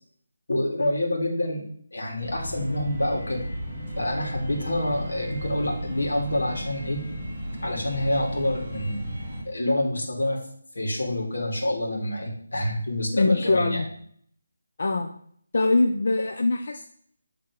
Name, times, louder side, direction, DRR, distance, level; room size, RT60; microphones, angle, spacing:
voice 1, 0.5-1.6 1.9-3.4 4.0-7.0 7.6-9.2 9.4-10.4 10.7-13.8, left 1 dB, 75° left, 0 dB, 2.1 m, -27 dB
sound 1, 2.2-9.4, equal, 5° right, 1.2 m, -34 dB
voice 2, 13.1-13.9 14.8-15.1 15.5-16.8, left 3 dB, 40° left, 4 dB, 0.4 m, -23 dB
7.4 x 3.6 x 4.6 m, 0.63 s
figure-of-eight pair, 180°, 0 cm